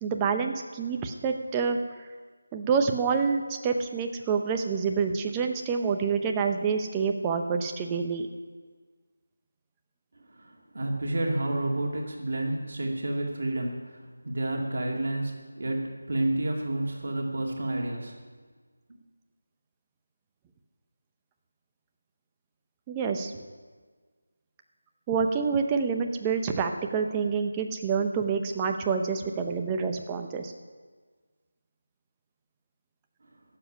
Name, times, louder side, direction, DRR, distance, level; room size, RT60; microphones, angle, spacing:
voice 1, 0.0-2.1 2.5-8.3 22.9-23.3 25.1-30.5, right 5 dB, 15° right, 5 dB, 0.8 m, -27 dB
voice 2, 10.2-18.3 18.9-19.0 33.3-33.4, right 1 dB, 55° right, 0 dB, 2.3 m, -30 dB
13.5 x 7.2 x 9.9 m, 1.5 s
figure-of-eight pair, 165°, 0 cm